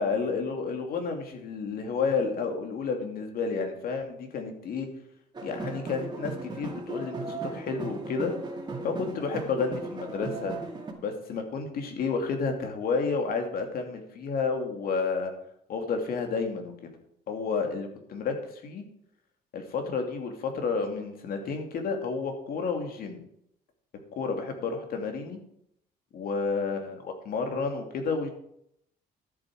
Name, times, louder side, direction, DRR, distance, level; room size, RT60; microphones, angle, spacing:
voice 1, 0.0-4.9 5.4-8.3 8.8-10.6 11.0-15.3 15.7-16.7 17.3-18.4 18.6-18.8 19.5-23.2 24.2-25.4 26.1-28.3, left 4 dB, 60° left, 4 dB, 2.6 m, -31 dB
sound 1, 5.3-10.9, right 3 dB, 25° right, 2.2 m, -37 dB
13.0 x 8.1 x 4.8 m, 0.73 s
cardioid pair, 110°, 17 cm